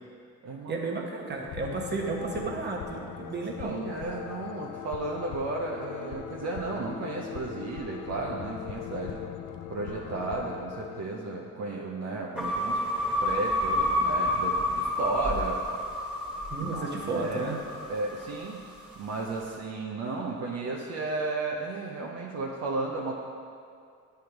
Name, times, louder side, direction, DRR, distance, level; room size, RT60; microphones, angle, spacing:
voice 1, 0.7-3.8 16.5-17.6, right 3 dB, 35° right, 0 dB, 1.1 m, -32 dB
sound 1, 1.3-11.0, left 10 dB, 80° left, 0.5 m, -40 dB
voice 2, 3.6-9.2 9.7-12.8 13.2-15.6 16.6-17.5 17.9-18.6 19.0-23.2, right 3 dB, 60° right, -2 dB, 0.7 m, -34 dB
sound 2, 12.4-18.7, left 1 dB, 5° right, 1.5 m, -29 dB
9.4 x 3.4 x 4.5 m, 2.3 s
cardioid pair, 90°, 30 cm